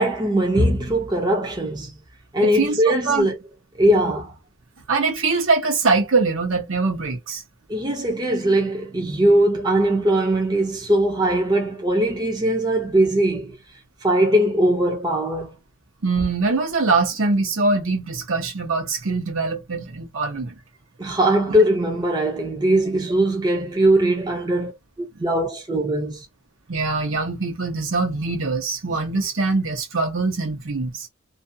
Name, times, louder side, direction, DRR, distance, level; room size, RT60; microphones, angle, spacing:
voice 1, 0.0-1.9 2.3-3.4 3.8-4.3 7.7-13.6 14.0-15.6 21.0-24.7 25.0-26.3, right 1 dB, 20° right, 0.6 m, -20 dB
voice 2, 2.4-3.3 4.9-7.4 16.0-20.6 24.2-24.3 26.7-31.1, right 3 dB, 65° right, 0.9 m, -23 dB
2.5 x 2.3 x 2.7 m
head